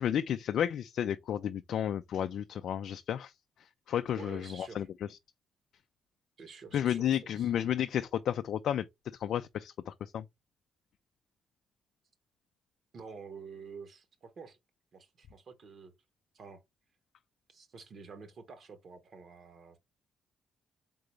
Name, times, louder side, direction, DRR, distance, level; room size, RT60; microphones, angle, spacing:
voice 1, 0.0-3.3 3.9-5.2 6.7-8.9 9.1-10.2, left 10 dB, 70° left, 0.3 m, -32 dB
voice 2, 4.1-4.9 6.4-7.5 12.9-14.6 14.9-15.9 16.3-16.6 17.5-19.8, right 5 dB, 55° right, 1.2 m, -49 dB
3.9 x 3.8 x 3.2 m
cardioid pair, 85°, 0 cm